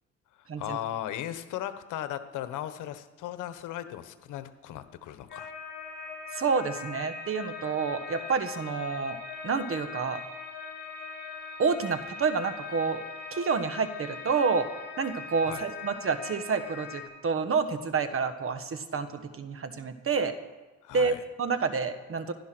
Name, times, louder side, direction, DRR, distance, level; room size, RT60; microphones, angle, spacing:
voice 1, 0.6-5.5 15.5-15.6 20.8-21.2, left 12 dB, 90° left, 11 dB, 1.1 m, -37 dB
sound 1, 5.3-17.0, left 5 dB, 35° left, 3.8 m, -41 dB
voice 2, 6.3-9.2 9.4-10.2 11.6-13.0 13.3-14.7 15.0-20.3 20.9-22.3, right 5 dB, 45° right, 10 dB, 1.4 m, -29 dB
16.0 x 11.0 x 6.1 m, 1.2 s
cardioid pair, 90°, 30 cm